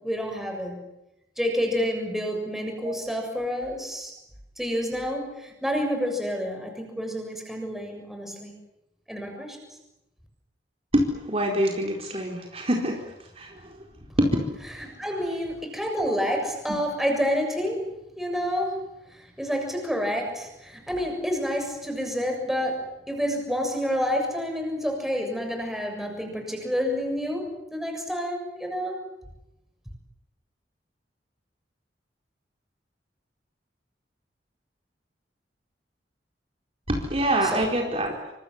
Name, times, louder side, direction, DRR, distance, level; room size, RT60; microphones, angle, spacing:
voice 1, 0.0-0.8 1.4-4.1 4.6-8.5 9.1-9.6 14.7-17.9 18.2-29.0 37.4-37.7, equal, ahead, 3 dB, 7.1 m, -29 dB
voice 2, 10.9-13.0 13.4-13.5 14.2-14.4 36.9-38.1, right 1 dB, 35° right, 1 dB, 4.6 m, -25 dB
29.0 x 26.5 x 7.4 m, 0.89 s
head